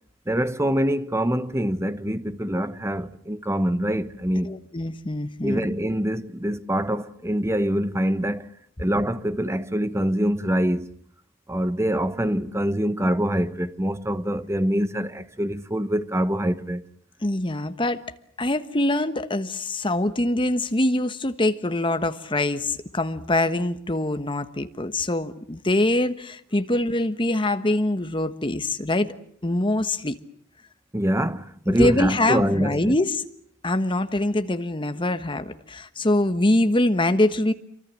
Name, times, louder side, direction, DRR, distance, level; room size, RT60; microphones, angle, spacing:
voice 1, 0.3-4.6 5.4-8.5 8.8-10.9 11.5-16.8 30.9-33.0, equal, 15° right, 1.0 m, -25 dB
voice 2, 4.5-5.7 17.2-18.0 18.4-29.1 29.4-30.2 31.7-33.2 33.6-37.5, left 1 dB, 25° left, 1.3 m, -24 dB
27.5 x 24.5 x 7.5 m
head